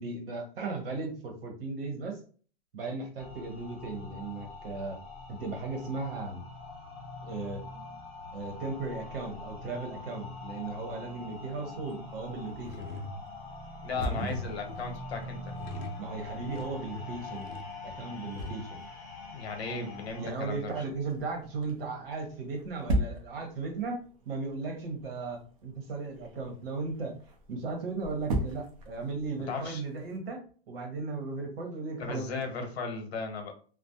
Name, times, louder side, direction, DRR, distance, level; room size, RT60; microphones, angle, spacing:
voice 1, 0.0-2.2 2.7-5.0 5.3-6.4 7.2-7.6 8.3-12.9 14.0-14.3 16.0-17.5 17.8-18.8 20.2-27.2 27.5-32.4, right 3 dB, 65° right, 2 dB, 1.1 m, -36 dB
sound 1, 3.2-20.3, left 2 dB, 20° left, 0.8 m, -44 dB
sound 2, 11.3-30.2, right 1 dB, 35° right, 0.5 m, -40 dB
sound 3, 12.2-12.3 12.6-18.5, left 2 dB, 60° left, 0.6 m, -42 dB
voice 2, 13.8-15.5 19.3-20.7 29.5-29.8 32.0-33.5, left 4 dB, 85° left, 5 dB, 0.9 m, -36 dB
2.4 x 2.1 x 2.7 m, 0.42 s
supercardioid pair, 170°, 31 cm